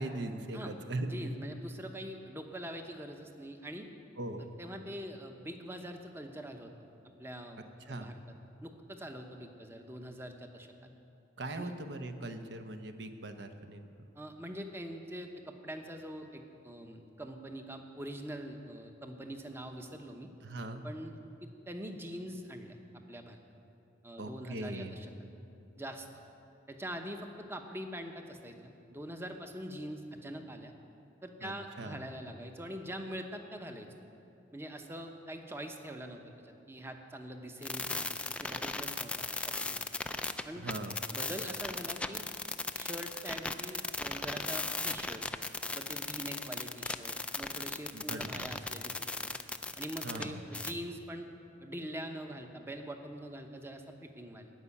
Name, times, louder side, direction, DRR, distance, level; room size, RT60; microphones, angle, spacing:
voice 1, 0.0-1.3 4.2-4.5 7.9-8.1 11.4-13.9 20.4-20.8 24.2-25.0 31.4-31.5 31.8-32.0 40.6-41.0 47.9-48.5 50.0-50.4, right 2 dB, 65° right, 7 dB, 0.9 m, -40 dB
voice 2, 1.0-3.9 4.6-6.7 7.2-7.6 7.9-8.2 8.6-10.9 11.6-11.7 14.1-20.3 20.8-21.2 21.4-22.8 23.1-23.4 24.0-25.1 25.8-26.1 26.7-30.7 31.2-33.9 34.5-39.9 40.4-40.6 41.1-42.3 42.8-45.3 45.7-49.3 49.8-51.3 51.6-54.5, equal, 15° right, 5 dB, 0.8 m, -44 dB
sound 1, 37.6-50.3 50.5-50.7, left 3 dB, 5° left, 0.3 m, -37 dB
15.5 x 5.5 x 9.8 m, 2.7 s
head